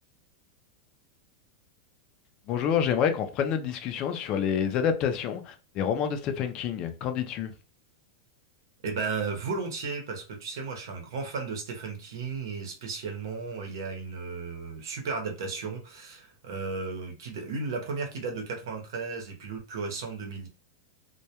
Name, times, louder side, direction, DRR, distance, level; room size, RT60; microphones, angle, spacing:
voice 1, 2.5-7.5, left 8 dB, 30° left, 0.3 m, -28 dB
voice 2, 8.8-20.5, right 4 dB, 75° right, 0.8 m, -34 dB
2.2 x 2.1 x 2.7 m
supercardioid pair, 160°, 2 cm